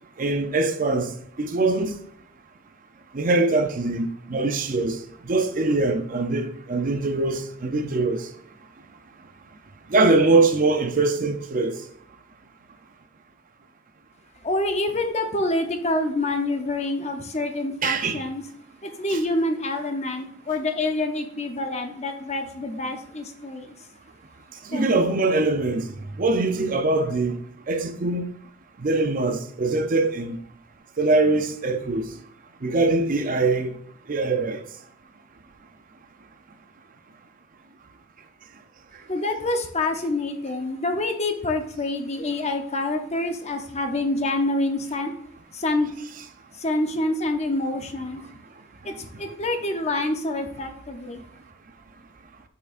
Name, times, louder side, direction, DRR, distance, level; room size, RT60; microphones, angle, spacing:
voice 1, 0.2-2.0 3.1-5.0 5.3-8.3 9.9-11.8 17.8-18.2 19.1-19.2 24.7-25.9 26.2-27.4 27.7-28.3 28.8-30.4 31.0-32.1 32.6-33.8 34.1-34.6, right 3 dB, 40° right, 0.5 m, -22 dB
voice 2, 14.4-18.4 18.8-23.7 24.7-25.0 39.1-45.1 45.5-45.9 46.6-48.2 48.8-51.2, left 2 dB, 35° left, 0.7 m, -27 dB
7.5 x 5.7 x 2.5 m
head